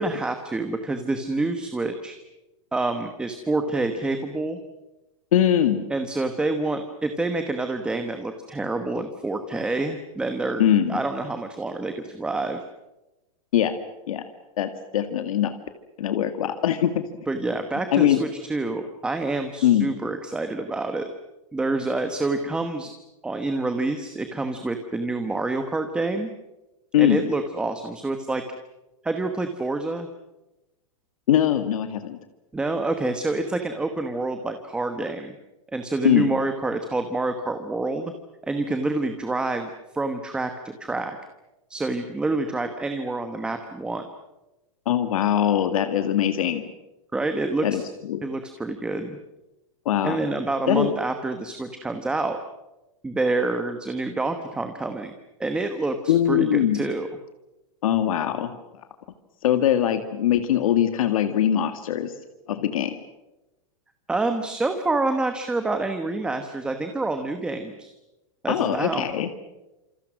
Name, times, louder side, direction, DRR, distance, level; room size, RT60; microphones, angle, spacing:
voice 1, 0.0-2.2 2.7-4.6 5.9-10.6 10.9-12.6 17.3-21.1 21.5-22.9 23.2-26.3 27.0-28.4 29.0-30.1 32.5-35.3 35.7-38.1 38.4-41.2 41.7-44.0 47.1-47.9 48.2-49.2 50.0-52.4 53.0-55.1 55.4-57.1 64.1-67.9 68.4-69.0, right 2 dB, 5° right, 7 dB, 1.2 m, -27 dB
voice 2, 5.3-5.8 10.6-11.0 13.5-13.7 14.1-14.2 14.6-15.5 16.0-17.0 17.9-18.2 19.6-19.9 26.9-27.2 31.3-32.2 36.0-36.3 44.9-46.6 47.6-47.8 48.1-48.2 49.9-50.2 50.7-50.9 56.1-56.8 57.8-58.6 59.4-62.1 62.5-62.9 68.5-69.3, left 10 dB, 75° left, 8 dB, 2.0 m, -21 dB
27.5 x 27.0 x 6.2 m, 1.0 s
supercardioid pair, 170°, 18 cm